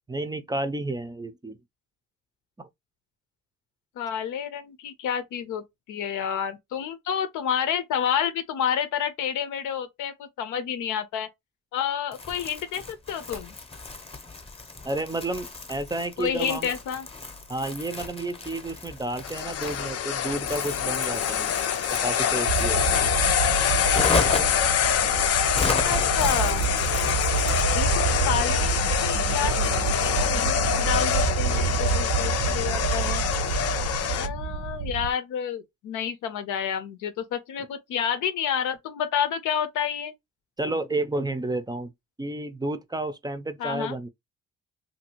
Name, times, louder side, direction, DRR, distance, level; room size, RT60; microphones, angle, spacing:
voice 1, 0.1-1.6 2.6-2.7 14.8-16.7 17.5-21.5 21.9-23.1 40.6-41.9 42.2-44.1, right 2 dB, 15° right, 0.4 m, -31 dB
voice 2, 4.0-11.3 11.7-13.5 16.2-17.1 25.8-26.7 27.7-33.2 33.9-40.1 43.6-44.0, left 8 dB, 90° left, 0.8 m, -29 dB
Crumpling crinkling, 12.1-27.9, left 3 dB, 20° left, 0.8 m, -34 dB
sound 1, 19.2-34.3, left 9 dB, 55° left, 0.5 m, -25 dB
sound 2, 22.5-35.1, right 6 dB, 85° right, 0.7 m, -28 dB
2.8 x 2.6 x 2.9 m
cardioid pair, 90°, 30 cm